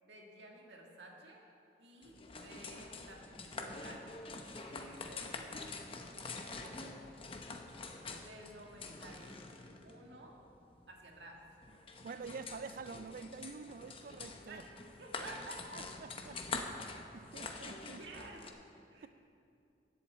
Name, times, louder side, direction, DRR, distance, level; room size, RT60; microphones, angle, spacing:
voice 1, 0.0-1.4 1.8-4.1 4.6-5.3 6.6-7.0 8.1-10.4 10.9-11.4 14.5-14.7 15.0-15.8 18.0-18.5 18.9-19.1, right 2 dB, 75° right, 1.8 m, -53 dB
sound 1, 2.0-18.5, left 3 dB, 30° left, 0.8 m, -46 dB
voice 2, 12.0-14.6 15.7-16.7 17.1-18.0, right 4 dB, 50° right, 0.4 m, -47 dB
10.5 x 7.9 x 8.0 m
head